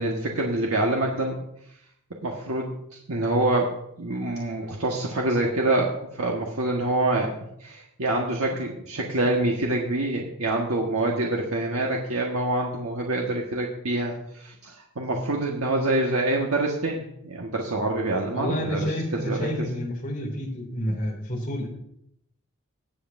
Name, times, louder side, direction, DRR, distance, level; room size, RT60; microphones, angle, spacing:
voice 1, 0.0-1.4 2.2-2.8 3.1-7.3 7.6-19.7 20.9-21.0, right 2 dB, 80° right, -1 dB, 1.5 m, -26 dB
voice 2, 18.3-21.7, equal, 40° left, 0 dB, 2.6 m, -29 dB
20.0 x 7.9 x 2.6 m, 0.74 s
head